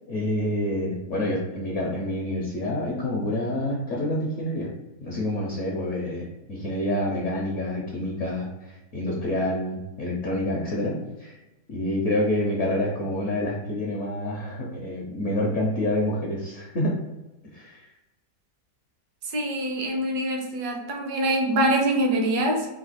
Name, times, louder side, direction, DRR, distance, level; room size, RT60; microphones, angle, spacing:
voice 1, 0.1-4.7 5.0-11.3 11.7-17.0 17.5-17.8, left 1 dB, 60° left, -3 dB, 0.8 m, -27 dB
voice 2, 19.3-22.7, right 1 dB, 65° right, 2 dB, 1.2 m, -24 dB
3.9 x 2.7 x 4.1 m, 1.0 s
omnidirectional pair, 2.0 m